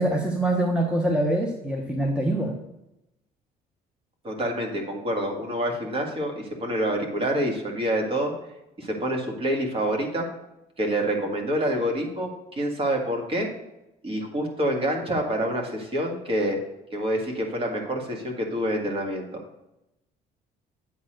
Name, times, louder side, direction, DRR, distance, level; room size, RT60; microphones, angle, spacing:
voice 1, 0.0-2.5, right 1 dB, 5° right, 2 dB, 0.9 m, -24 dB
voice 2, 4.2-8.3 8.8-10.3 10.8-13.5 14.0-16.6 16.9-19.4, right 1 dB, 35° right, 2 dB, 2.0 m, -27 dB
8.4 x 4.1 x 6.4 m, 0.89 s
cardioid pair, 110°, 17 cm